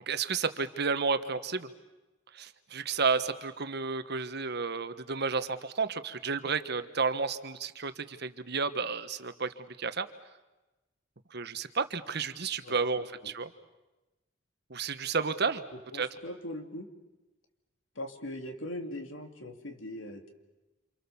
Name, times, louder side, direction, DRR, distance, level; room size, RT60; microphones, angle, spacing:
voice 1, 0.1-1.7 2.3-10.1 11.3-13.5 14.7-15.6 15.9-16.1, right 5 dB, 55° right, 11 dB, 1.4 m, -31 dB
voice 2, 12.6-13.3 15.9-16.9 18.0-20.3, left 1 dB, 80° left, 5 dB, 2.8 m, -41 dB
28.5 x 27.5 x 7.2 m, 1.1 s
head